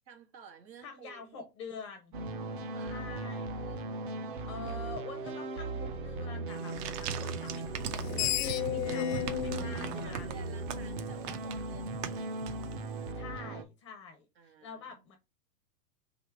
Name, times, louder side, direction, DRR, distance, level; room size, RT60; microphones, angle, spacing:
voice 1, 0.1-1.5 2.7-3.9 9.5-12.3 14.3-15.0, right 6 dB, 90° right, 1.7 m, -53 dB
voice 2, 0.8-2.1 2.8-3.5 4.5-10.3 13.1-15.2, left 4 dB, 20° left, 0.4 m, -46 dB
sound 1, 2.1-13.6, right 2 dB, 35° right, 0.5 m, -38 dB
sound 2, 6.5-13.0, right 8 dB, 65° right, 0.9 m, -42 dB
Screech, 7.8-11.1, left 11 dB, 85° left, 0.6 m, -34 dB
3.6 x 2.9 x 4.4 m
hypercardioid pair, 145°, 50 cm